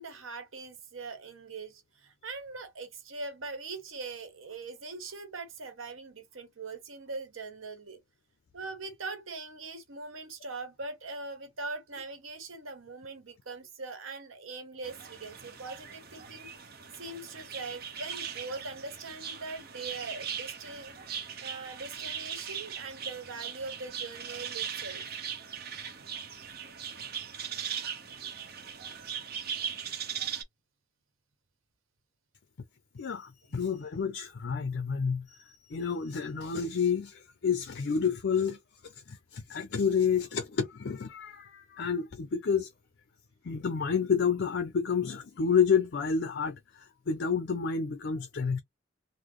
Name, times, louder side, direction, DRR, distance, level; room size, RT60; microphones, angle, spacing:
voice 1, 0.0-8.0 8.5-25.0 33.5-33.6, right 3 dB, 85° right, 1.0 m, -41 dB
sound 1, 14.8-30.4, right 7 dB, 50° right, 0.7 m, -39 dB
voice 2, 32.9-38.6 38.8-42.7 43.4-48.6, left 6 dB, 55° left, 0.5 m, -29 dB
3.8 x 2.0 x 3.0 m
head